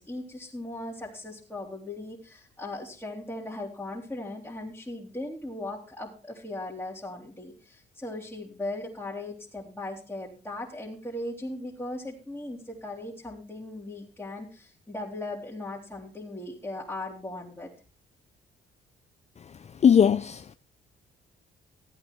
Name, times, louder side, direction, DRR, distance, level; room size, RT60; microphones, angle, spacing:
voice 1, 0.0-17.7, left 2 dB, 10° left, 2.9 m, -38 dB
voice 2, 19.8-20.5, left 7 dB, 35° left, 0.5 m, -19 dB
14.5 x 8.7 x 4.5 m
cardioid pair, 90°, 20 cm